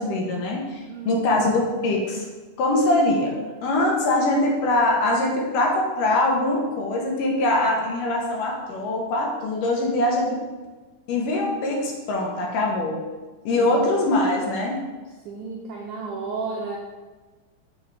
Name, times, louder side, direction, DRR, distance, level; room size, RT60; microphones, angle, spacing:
voice 1, 0.0-2.3 2.6-3.3 3.6-10.4 11.1-13.0 13.5-14.8, left 2 dB, 70° left, 0 dB, 2.4 m, -23 dB
voice 2, 0.9-1.5 13.6-13.8 15.2-16.8, right 4 dB, 85° right, -1 dB, 1.7 m, -33 dB
7.7 x 4.8 x 3.4 m, 1.3 s
omnidirectional pair, 4.1 m